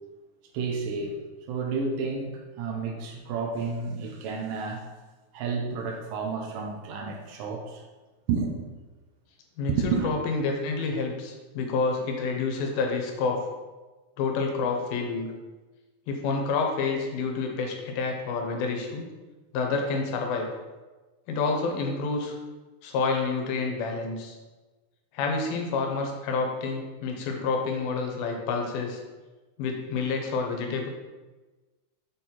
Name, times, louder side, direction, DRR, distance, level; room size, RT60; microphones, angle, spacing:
voice 1, 0.5-1.2 1.5-4.9 5.3-7.8 8.3-8.5 9.7-10.1, right 5 dB, 75° right, 1 dB, 2.2 m, -30 dB
voice 2, 10.0-13.4 14.2-15.3 16.1-19.1 19.5-20.5 21.3-22.4 22.8-24.4 25.1-29.0 29.6-30.9, left 4 dB, 85° left, 2 dB, 2.7 m, -28 dB
7.0 x 4.1 x 4.3 m, 1.2 s
omnidirectional pair, 4.2 m